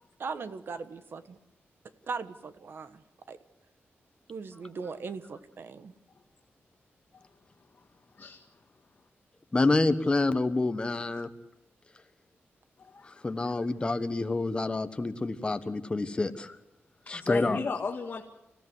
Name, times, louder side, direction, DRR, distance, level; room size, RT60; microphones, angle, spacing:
voice 1, 0.2-1.4 2.1-3.4 4.3-5.9, right 5 dB, 60° right, 12 dB, 1.3 m, -39 dB
voice 2, 9.5-11.3 13.1-16.6 17.1-17.6, left 2 dB, 25° left, 9 dB, 1.3 m, -28 dB
voice 3, 12.8-13.2 17.0-18.2, left 4 dB, 45° left, 1 dB, 1.8 m, -35 dB
27.0 x 16.0 x 7.9 m, 0.87 s
wide cardioid pair, 145°, 4 cm